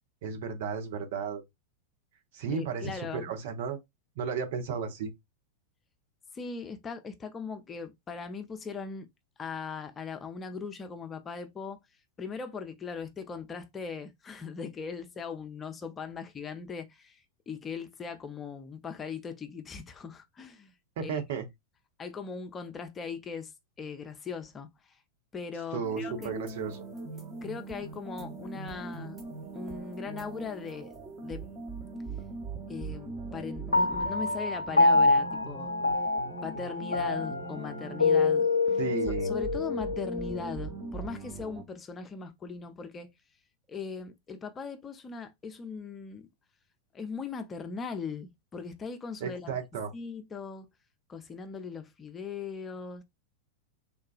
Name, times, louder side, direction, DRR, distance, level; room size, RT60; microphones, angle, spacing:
voice 1, 0.2-1.4 2.3-3.8 4.2-5.1 21.0-21.4 25.7-26.9 38.8-39.3 49.2-49.9, right 6 dB, 55° right, 0.7 m, -34 dB
voice 2, 2.5-3.3 6.3-9.1 9.4-11.8 12.2-20.7 21.0-21.2 22.0-23.5 23.8-25.0 25.3-26.3 27.4-29.2 29.5-30.9 31.2-31.5 32.7-35.7 36.4-38.8 39.2-43.1 43.7-46.3 46.9-49.6 49.9-50.7 51.1-53.0, left 5 dB, 20° left, 0.5 m, -39 dB
sound 1, 25.8-41.6, right 3 dB, 20° right, 0.9 m, -41 dB
Piano, 33.7-40.4, left 3 dB, 75° left, 0.4 m, -26 dB
3.6 x 2.3 x 2.4 m
figure-of-eight pair, 90°, 0 cm